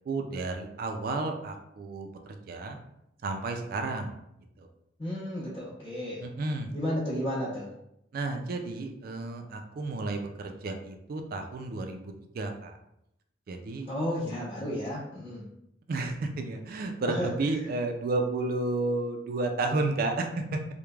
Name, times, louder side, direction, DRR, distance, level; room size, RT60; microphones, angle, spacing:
voice 1, 0.1-2.8 3.2-4.1 4.6-4.7 6.2-6.7 8.1-12.8 13.5-13.9 15.9-20.6, right 2 dB, 50° right, 5 dB, 0.3 m, -32 dB
voice 2, 5.0-6.2 6.7-7.7 13.9-15.4 17.2-17.3, equal, 25° left, -12 dB, 0.8 m, -32 dB
3.1 x 2.1 x 2.3 m, 0.80 s
head